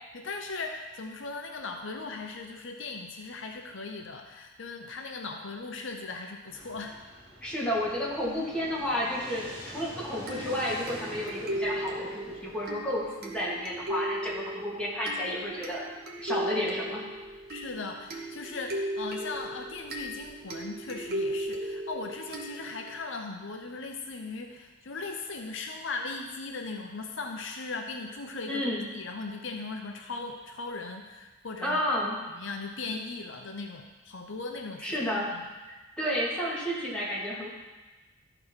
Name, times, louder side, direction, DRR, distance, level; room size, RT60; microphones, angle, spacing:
voice 1, 0.1-7.0 17.5-35.4, left 3 dB, 70° left, 3 dB, 0.8 m, -38 dB
Fixed-wing aircraft airplane, 6.5-22.2, equal, 25° right, 2.3 m, -48 dB
voice 2, 7.4-15.8 16.2-17.0 28.5-28.8 31.6-32.2 34.8-35.3 35.7-37.5, equal, 5° left, -8 dB, 2.8 m, -31 dB
sound 1, 10.3-23.0, right 1 dB, 55° right, 1.3 m, -37 dB
13.5 x 4.6 x 5.7 m, 1.2 s
head